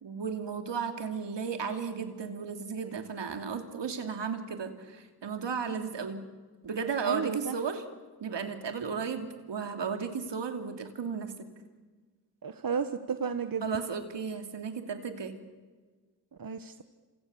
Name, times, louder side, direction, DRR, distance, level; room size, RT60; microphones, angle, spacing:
voice 1, 0.0-6.2 6.6-7.8 8.2-11.3 13.6-15.3, right 6 dB, 75° right, 6 dB, 2.9 m, -34 dB
voice 2, 7.0-7.6 12.4-13.8 16.4-16.8, right 6 dB, 50° right, 9 dB, 1.4 m, -33 dB
27.5 x 27.0 x 7.2 m, 1.4 s
cardioid pair, 45°, 43 cm